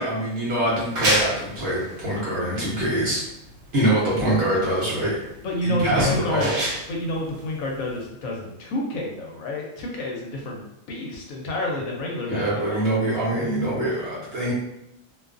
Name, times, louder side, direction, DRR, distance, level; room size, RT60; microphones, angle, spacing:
voice 1, 0.0-3.2 3.7-5.2 5.6-6.5 12.3-14.5, right 1 dB, 50° right, -7 dB, 0.9 m, -24 dB
sound 1, 0.6-8.1, equal, 75° right, 1.2 m, -29 dB
voice 2, 5.4-6.5 6.9-10.6 10.9-12.9, left 1 dB, 75° left, -1 dB, 1.0 m, -29 dB
2.5 x 2.3 x 2.4 m, 0.84 s
omnidirectional pair, 1.5 m